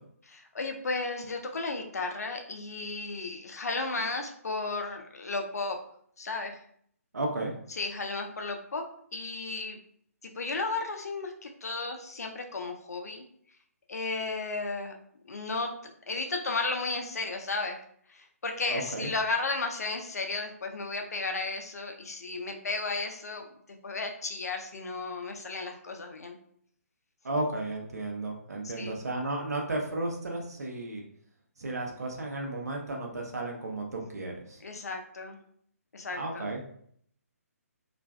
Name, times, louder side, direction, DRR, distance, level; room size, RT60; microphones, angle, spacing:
voice 1, 0.2-5.8 6.2-6.6 7.7-8.9 9.1-9.8 10.2-13.2 13.9-14.9 15.2-17.8 18.1-23.4 23.8-26.4 28.6-29.0 34.6-35.4 35.9-36.5, left 3 dB, 80° left, 3 dB, 0.5 m, -34 dB
voice 2, 7.1-7.5 18.7-19.1 27.2-31.0 31.6-34.6 36.2-36.6, right 2 dB, 85° right, 0 dB, 0.7 m, -33 dB
2.5 x 2.2 x 2.2 m, 0.64 s
hypercardioid pair, 150°, 8 cm